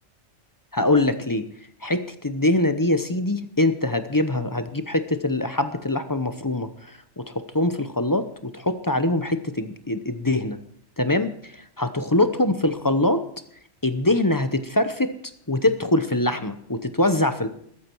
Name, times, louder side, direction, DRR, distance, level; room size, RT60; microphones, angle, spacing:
voice 1, 0.7-1.5 1.8-10.6 11.0-13.3 13.8-15.1 15.5-17.5, left 2 dB, 20° left, 9 dB, 0.7 m, -23 dB
20.5 x 8.5 x 4.6 m, 0.67 s
omnidirectional pair, 1.2 m